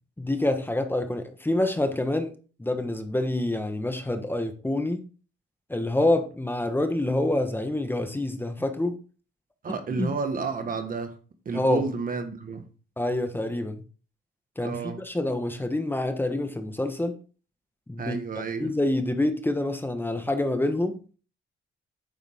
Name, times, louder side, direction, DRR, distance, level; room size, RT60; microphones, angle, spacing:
voice 1, 0.2-2.3 2.6-5.0 5.7-9.0 10.0-10.1 11.5-11.8 13.0-13.8 14.6-17.1 17.9-18.2 18.6-21.0, left 1 dB, 10° left, 1.2 m, -27 dB
voice 2, 9.6-11.2 11.4-12.6 14.6-15.0 18.0-18.7, right 4 dB, 45° right, 1.6 m, -31 dB
9.4 x 7.1 x 3.6 m
cardioid pair, 90°, 20 cm